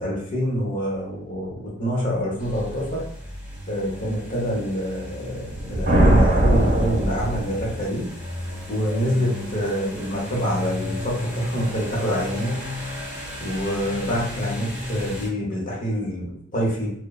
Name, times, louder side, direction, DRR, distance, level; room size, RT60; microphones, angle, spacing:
voice 1, 0.0-3.0 3.7-8.0 8.7-12.6 13.4-16.9, equal, 45° left, -3 dB, 0.9 m, -26 dB
sound 1, 2.4-15.3, left 1 dB, 5° right, 0.9 m, -34 dB
sound 2, 5.4-7.9, right 1 dB, 50° right, 1.0 m, -19 dB
3.0 x 2.1 x 2.3 m, 0.69 s
head